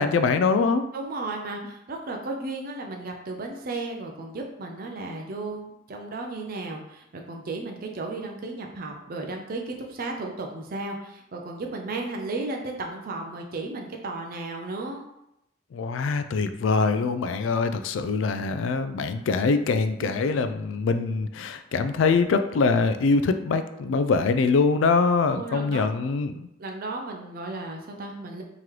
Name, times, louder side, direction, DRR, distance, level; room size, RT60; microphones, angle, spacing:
voice 1, 0.0-0.8 15.7-26.5, left 4 dB, 85° left, 10 dB, 0.3 m, -23 dB
voice 2, 0.9-15.1 20.0-20.1 25.3-26.0 26.6-28.4, right 2 dB, 50° right, 2 dB, 0.5 m, -34 dB
3.7 x 3.0 x 3.1 m, 0.83 s
head